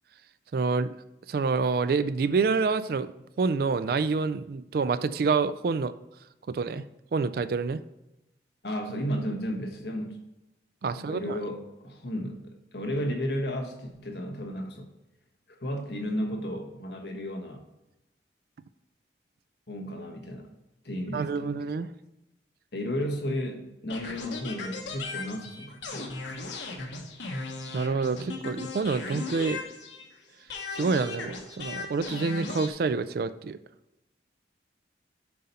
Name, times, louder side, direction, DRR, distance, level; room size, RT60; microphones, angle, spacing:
voice 1, 0.5-0.9 1.3-3.1 3.4-5.9 6.5-7.8 10.8-11.4 21.1-21.9 27.7-29.6 30.7-33.6, right 4 dB, 55° right, 13 dB, 0.3 m, -27 dB
voice 2, 8.6-10.2 10.9-14.9 15.6-17.6 19.7-20.5 20.8-21.6 22.7-26.1, equal, 65° left, 2 dB, 1.2 m, -33 dB
sound 1, 23.9-30.2 30.5-32.7, left 3 dB, 80° left, 1.3 m, -37 dB
7.5 x 5.5 x 4.2 m, 0.92 s
head